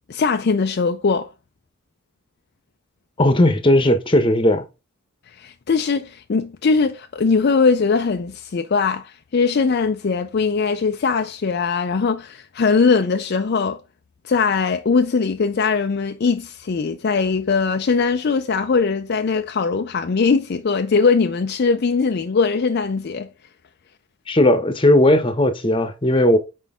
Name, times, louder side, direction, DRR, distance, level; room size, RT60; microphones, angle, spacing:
voice 1, 0.1-1.3 5.3-13.8 14.2-23.3, left 4 dB, 45° left, 0.4 m, -20 dB
voice 2, 3.2-4.6 24.3-26.4, left 1 dB, 25° left, 0.9 m, -16 dB
6.1 x 4.7 x 3.6 m
head